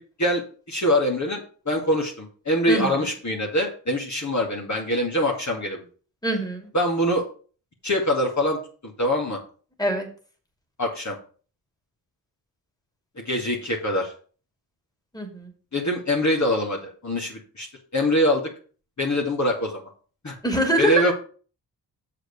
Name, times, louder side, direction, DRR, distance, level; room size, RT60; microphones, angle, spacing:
voice 1, 0.0-5.8 6.7-7.2 7.8-9.4 10.8-11.2 13.2-14.1 15.7-17.7 17.9-18.5 19.0-19.8 20.2-20.3 20.8-21.1, left 1 dB, 40° left, -1 dB, 2.3 m, -24 dB
voice 2, 6.2-6.7 9.8-10.1 15.1-15.5 20.4-21.1, right 1 dB, 10° left, 3 dB, 2.6 m, -24 dB
6.7 x 4.9 x 6.6 m, 0.40 s
cardioid pair, 50°, 44 cm